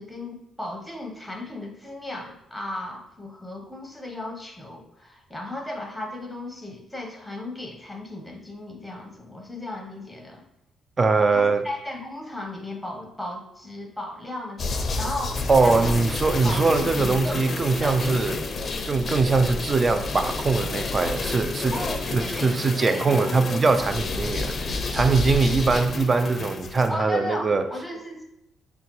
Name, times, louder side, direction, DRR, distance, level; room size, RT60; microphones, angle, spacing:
voice 1, 0.0-10.4 11.3-16.0 16.4-18.6 21.7-23.3 26.9-28.2, left 1 dB, ahead, 0.8 m, -35 dB
voice 2, 11.0-11.6 15.5-18.4 18.9-21.7 22.1-27.6, right 4 dB, 35° right, 0.3 m, -22 dB
sound 1, 14.6-26.9, left 3 dB, 45° left, 0.4 m, -30 dB
4.8 x 2.2 x 3.0 m
cardioid pair, 90°, 0 cm